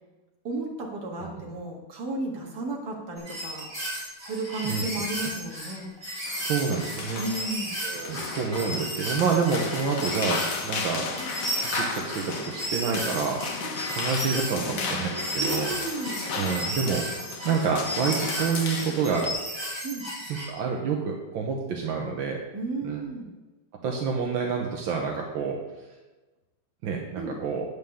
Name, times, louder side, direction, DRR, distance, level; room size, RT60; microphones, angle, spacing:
voice 1, 0.4-3.7 4.2-5.9 7.2-7.8 13.6-13.7 14.3-16.2 19.8-20.1 22.5-23.3 27.1-27.4, right 2 dB, 55° right, -1 dB, 2.3 m, -34 dB
sound 1, 3.2-20.5, right 1 dB, 10° right, 3.5 m, -34 dB
sound 2, 6.2-19.3, left 5 dB, 55° left, 1.1 m, -34 dB
voice 2, 6.4-7.3 7.8-11.1 11.7-15.7 16.3-17.0 17.5-19.3 20.5-22.4 22.8-23.0 23.8-25.6 26.8-27.7, right 5 dB, 80° right, 0 dB, 1.7 m, -28 dB
9.2 x 5.1 x 6.9 m, 1.1 s
omnidirectional pair, 2.2 m